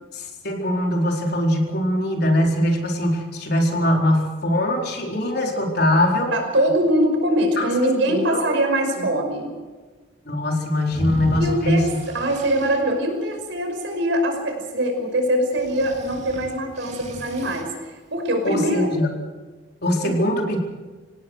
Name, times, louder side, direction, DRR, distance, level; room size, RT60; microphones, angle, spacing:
voice 1, 0.1-6.3 7.6-7.7 8.1-8.4 9.0-9.1 10.3-11.9 18.4-19.1 19.8-20.6, left 1 dB, 55° left, 1 dB, 4.3 m, -22 dB
voice 2, 6.3-9.5 11.4-18.9 20.0-20.1, right 1 dB, 70° right, 4 dB, 5.7 m, -23 dB
sound 1, 10.9-12.8 15.6-17.6, right 1 dB, 35° right, 2.8 m, -33 dB
26.0 x 18.0 x 6.5 m, 1.3 s
head